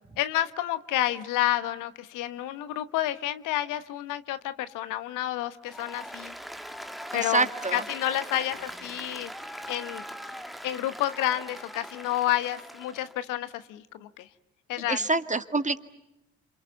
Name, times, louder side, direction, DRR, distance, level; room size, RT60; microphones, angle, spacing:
voice 1, 0.2-6.3 7.1-9.3 9.7-10.0 10.6-14.3 14.7-15.1, left 13 dB, 75° left, 13 dB, 1.2 m, -30 dB
Applause, 5.6-13.2, equal, ahead, 1.8 m, -41 dB
voice 2, 7.1-7.8 14.9-15.8, right 3 dB, 25° right, 9 dB, 1.9 m, -26 dB
29.0 x 27.5 x 7.0 m, 0.94 s
hypercardioid pair, 45°, 32 cm